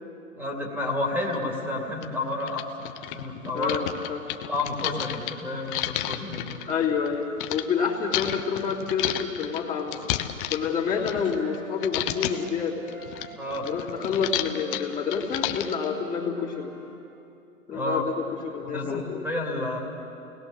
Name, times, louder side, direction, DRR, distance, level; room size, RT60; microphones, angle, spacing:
voice 1, 0.3-3.8 4.5-6.6 13.3-13.7 17.7-18.0 18.6-19.8, left 2 dB, 5° right, -1 dB, 2.8 m, -30 dB
sound 1, 1.3-1.4 2.0-2.1 2.4-7.6 8.1-11.6 11.8-12.5 12.9-15.9, left 13 dB, 35° left, 1.1 m, -32 dB
voice 2, 3.5-4.2 6.7-10.0 10.5-12.8 13.6-16.7 17.7-18.1 18.4-19.2, left 6 dB, 20° left, -4 dB, 2.9 m, -28 dB
Wind instrument woodwind instrument, 8.9-12.5 12.9-17.0, right 2 dB, 85° right, 7.2 m, -46 dB
29.5 x 19.5 x 6.6 m, 2.8 s
hypercardioid pair, 130°, 42 cm